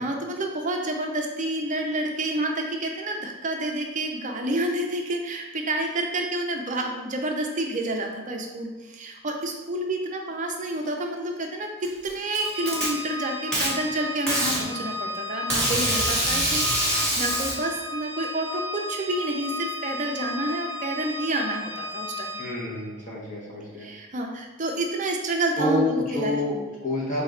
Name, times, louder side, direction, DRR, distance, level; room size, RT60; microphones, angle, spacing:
voice 1, 0.0-22.4 23.8-26.7, right 1 dB, 35° right, 2 dB, 0.5 m, -29 dB
Packing tape duct tape, 11.8-12.9 13.5-13.7 14.3-14.6 15.5-17.5, right 1 dB, 5° left, 1.1 m, -24 dB
Organ, 12.4-22.8, left 1 dB, 20° left, 0.4 m, -34 dB
voice 2, 22.4-23.9 25.6-26.5 26.8-27.2, left 2 dB, 35° left, -5 dB, 1.4 m, -27 dB
4.2 x 3.1 x 3.8 m, 1.2 s
head